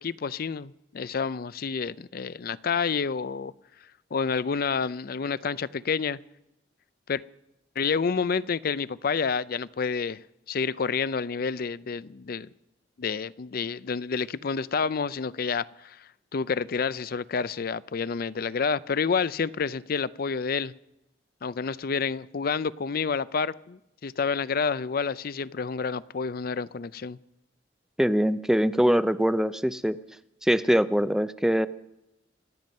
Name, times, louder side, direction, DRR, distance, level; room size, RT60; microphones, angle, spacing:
voice 1, 0.0-3.5 4.1-6.2 7.1-7.2 7.8-10.2 10.5-12.5 13.0-16.0 16.3-20.7 21.4-27.2, left 5 dB, 55° left, 17 dB, 0.5 m, -29 dB
voice 2, 28.0-30.0 30.4-31.7, equal, 5° right, 13 dB, 0.5 m, -23 dB
26.5 x 9.2 x 5.4 m, 0.86 s
head